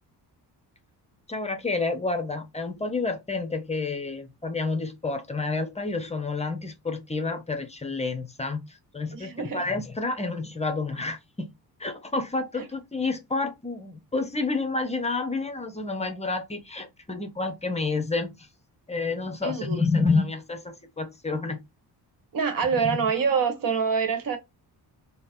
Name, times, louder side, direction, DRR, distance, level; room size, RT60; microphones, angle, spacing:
voice 1, 1.3-11.5 11.8-18.5 18.9-21.6 22.8-23.0, left 3 dB, 15° left, 0.6 m, -29 dB
voice 2, 9.1-9.6 12.6-12.7 19.4-19.8 22.3-24.4, right 6 dB, 55° right, 1.2 m, -26 dB
4.0 x 2.1 x 3.6 m
cardioid pair, 100°, 40 cm